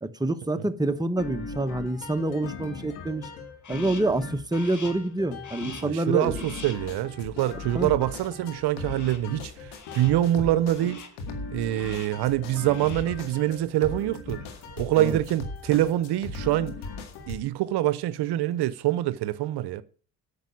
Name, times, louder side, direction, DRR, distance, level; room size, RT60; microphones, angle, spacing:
voice 1, 0.0-3.3 3.7-6.4 7.7-8.0 15.0-15.2, right 2 dB, 10° right, 1.2 m, -27 dB
sound 1, 1.2-17.4, left 3 dB, 85° left, 2.1 m, -38 dB
Crow, 3.6-4.2 4.5-5.1 5.4-6.0 6.3-6.9 8.8-9.3 9.7-10.2 10.7-11.2 11.7-12.2 12.6-13.2, left 5 dB, 45° left, 2.1 m, -45 dB
voice 2, 5.8-11.0 11.5-14.4 14.8-16.8 17.3-19.8, right 14 dB, 70° right, 0.7 m, -25 dB
9.0 x 6.8 x 8.5 m
supercardioid pair, 60°, 40 cm